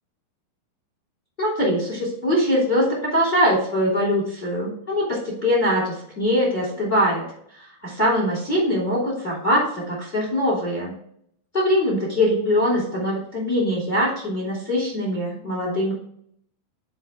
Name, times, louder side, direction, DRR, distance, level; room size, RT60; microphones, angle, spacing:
voice 1, 1.4-7.3 7.6-10.9 11.5-15.9, equal, 15° left, -3 dB, 2.5 m, -22 dB
9.4 x 4.8 x 3.6 m, 0.66 s
omnidirectional pair, 4.9 m